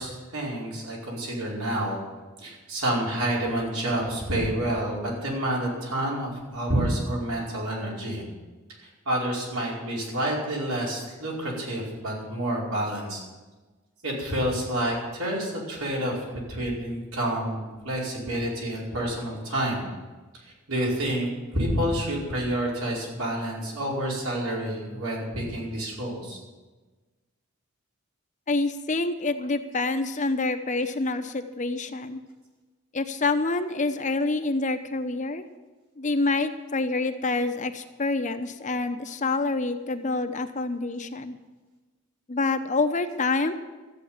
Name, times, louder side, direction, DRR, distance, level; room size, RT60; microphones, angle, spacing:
voice 1, 0.0-2.0 2.4-8.2 8.8-13.2 14.0-19.8 20.4-21.3 21.5-26.4, right 1 dB, 80° right, -4 dB, 5.0 m, -29 dB
voice 2, 28.5-32.2 32.9-35.4 36.0-41.4 42.3-43.5, left 3 dB, 35° left, 8 dB, 0.8 m, -27 dB
13.5 x 8.2 x 9.4 m, 1.3 s
head